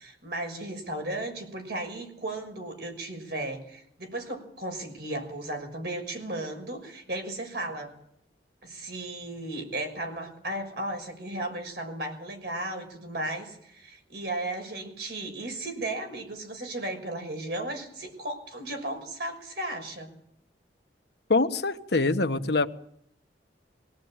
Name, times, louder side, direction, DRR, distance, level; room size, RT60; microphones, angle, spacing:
voice 1, 0.0-7.9 8.6-20.2, right 1 dB, 65° right, 3 dB, 6.2 m, -35 dB
voice 2, 21.3-22.7, left 3 dB, 65° left, 8 dB, 1.2 m, -24 dB
24.0 x 18.0 x 8.9 m, 0.73 s
head